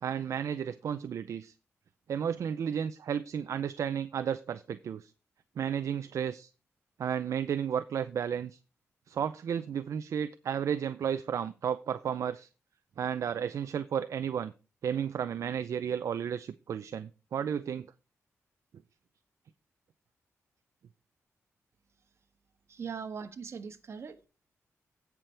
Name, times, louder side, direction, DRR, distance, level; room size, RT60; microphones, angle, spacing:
voice 1, 0.0-1.5 2.1-5.1 5.6-6.5 7.0-8.6 9.1-12.5 13.0-14.5 14.8-17.9, right 8 dB, 70° right, 0.5 m, -33 dB
voice 2, 22.7-24.3, right 6 dB, 55° right, 1.5 m, -40 dB
16.5 x 6.0 x 3.4 m
wide cardioid pair, 120°, 5 cm